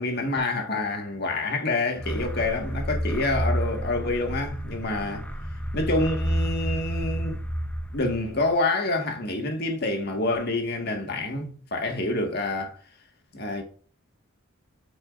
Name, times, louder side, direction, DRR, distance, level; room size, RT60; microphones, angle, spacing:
voice 1, 0.0-5.2 5.7-7.4 7.9-12.8 13.3-13.6, left 2 dB, 45° left, 1.7 m, -27 dB
sound 1, 2.0-8.5, equal, 5° left, 0.7 m, -30 dB
8.9 x 6.0 x 2.5 m
head